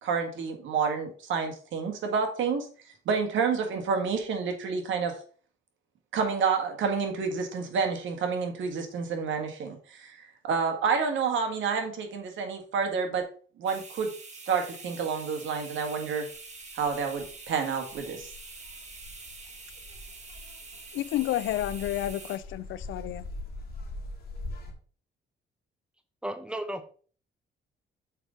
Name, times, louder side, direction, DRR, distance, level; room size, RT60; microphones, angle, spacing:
voice 1, 0.0-2.7 3.0-5.2 6.1-10.2 10.4-13.2 13.6-14.1 14.5-16.3 16.8-18.3, right 5 dB, 75° right, 1.7 m, -29 dB
sound 1, 13.7-22.4, right 3 dB, 35° right, 1.6 m, -45 dB
sound 2, 16.3-24.7, left 2 dB, 50° left, 1.9 m, -43 dB
voice 2, 20.9-23.2, left 14 dB, 80° left, 0.5 m, -30 dB
voice 3, 26.2-26.9, right 1 dB, 5° right, 1.0 m, -34 dB
6.6 x 5.1 x 3.8 m
cardioid pair, 90°, 20 cm